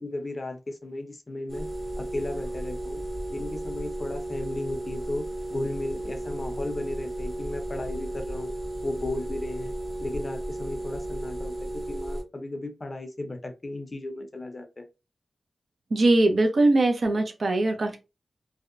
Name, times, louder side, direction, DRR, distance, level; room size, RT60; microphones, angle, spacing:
voice 1, 0.0-1.7 2.0-3.0 3.3-5.2 5.5-8.5 8.8-9.7 10.0-14.9, left 2 dB, 35° left, 0.5 m, -35 dB
sound 1, 1.5-12.2, right 1 dB, 35° right, 1.4 m, -34 dB
voice 2, 15.9-18.0, right 2 dB, 60° right, 0.5 m, -21 dB
2.7 x 2.0 x 2.4 m
wide cardioid pair, 120°, 0 cm